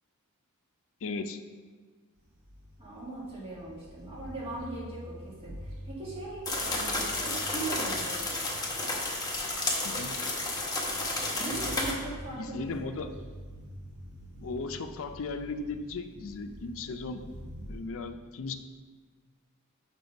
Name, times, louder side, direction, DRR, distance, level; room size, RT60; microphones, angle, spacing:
voice 1, 1.0-1.4 9.8-10.1 12.3-13.1 14.4-17.2 17.7-18.5, left 3 dB, 65° left, 8 dB, 0.5 m, -36 dB
sound 1, 2.2-17.9, equal, 75° right, 1.6 m, -47 dB
voice 2, 2.8-8.3 11.3-12.9, right 2 dB, 25° right, -6 dB, 1.8 m, -39 dB
sound 2, 6.5-11.9, left 2 dB, 15° left, 1.0 m, -31 dB
5.8 x 5.5 x 5.1 m, 1.5 s
head